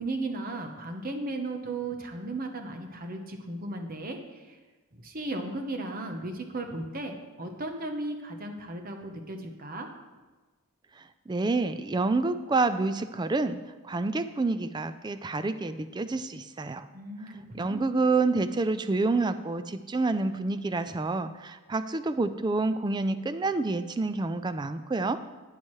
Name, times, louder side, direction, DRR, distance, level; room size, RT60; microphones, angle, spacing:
voice 1, 0.0-4.6 4.9-9.9 16.9-17.8, right 2 dB, 40° right, 4 dB, 1.0 m, -36 dB
voice 2, 11.0-13.6 13.8-16.9 17.6-25.2, right 3 dB, 20° right, 11 dB, 0.3 m, -28 dB
12.0 x 9.1 x 3.2 m, 1.3 s
head